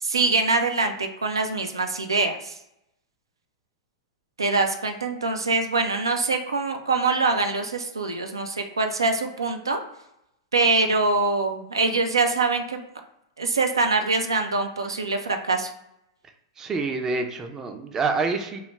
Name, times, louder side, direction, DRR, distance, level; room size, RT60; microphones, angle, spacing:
voice 1, 0.0-2.5 4.4-9.8 10.5-12.8 13.4-15.7, right 3 dB, 90° right, 5 dB, 0.3 m, -24 dB
voice 2, 16.6-18.6, right 4 dB, 20° right, 5 dB, 0.4 m, -27 dB
2.3 x 2.0 x 3.2 m, 0.84 s
hypercardioid pair, 105°, 2 cm